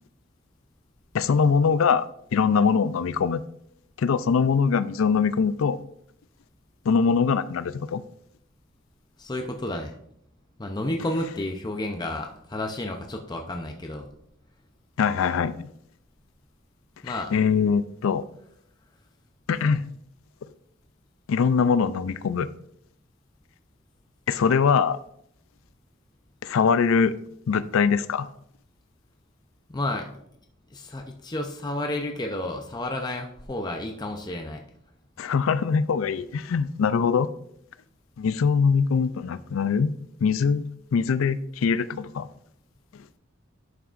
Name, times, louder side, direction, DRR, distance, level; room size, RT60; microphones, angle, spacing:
voice 1, 1.1-2.1 2.3-3.4 4.0-5.8 6.9-8.0 15.0-15.7 17.1-18.2 19.5-19.8 21.3-22.5 24.3-25.0 26.4-27.1 27.5-28.3 35.2-37.3 38.2-39.9 40.2-40.6 40.9-42.3, left 6 dB, 85° left, 0.4 m, -22 dB
voice 2, 9.2-10.0 10.6-14.1 17.0-17.3 29.7-30.1 30.7-34.6, left 1 dB, 20° left, 0.6 m, -31 dB
11.0 x 5.8 x 2.5 m
head